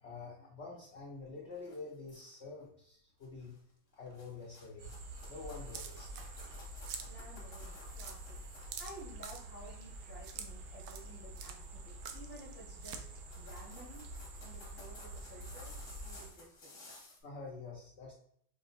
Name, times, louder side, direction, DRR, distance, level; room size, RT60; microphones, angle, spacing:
voice 1, 0.0-3.5 3.9-4.9 5.3-6.1 17.2-18.1, left 4 dB, 65° left, -4 dB, 0.6 m, -47 dB
sound 1, 1.5-2.5 3.2-3.6 3.9-9.0 11.0-11.2 11.6-12.0 12.7-12.8 13.1-17.2, left 2 dB, 45° left, 1.2 m, -56 dB
sound 2, 4.8-16.3, right 1 dB, 65° right, 1.2 m, -48 dB
sound 3, 5.7-6.5 6.8-7.1 7.5-7.6 8.0-8.2 8.7-9.4 10.2-10.5 10.8-11.1 11.4-11.6 12.0-12.5 12.8-13.0, right 7 dB, 85° right, 0.8 m, -45 dB
voice 2, 7.1-13.1 13.4-14.0 14.4-15.8 16.0-17.0, right 1 dB, 5° right, -4 dB, 0.8 m, -53 dB
4.7 x 2.1 x 4.0 m, 0.65 s
omnidirectional pair, 2.2 m